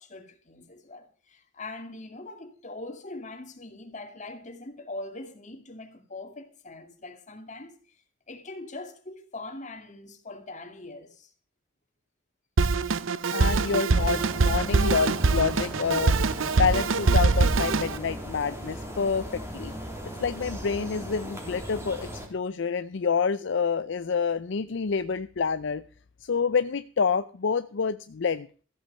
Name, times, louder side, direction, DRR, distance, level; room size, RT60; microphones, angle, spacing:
voice 1, 0.0-8.0 8.3-11.3, left 2 dB, 40° left, 2.3 m, -42 dB
Drum kit, 12.6-18.0, right 4 dB, 80° right, 0.7 m, -23 dB
voice 2, 13.3-16.2 16.6-19.7 20.0-25.8 26.2-28.5, left 5 dB, 65° left, 0.5 m, -28 dB
sound 1, 13.9-22.3, equal, 15° right, 3.3 m, -38 dB
14.5 x 8.2 x 6.7 m
head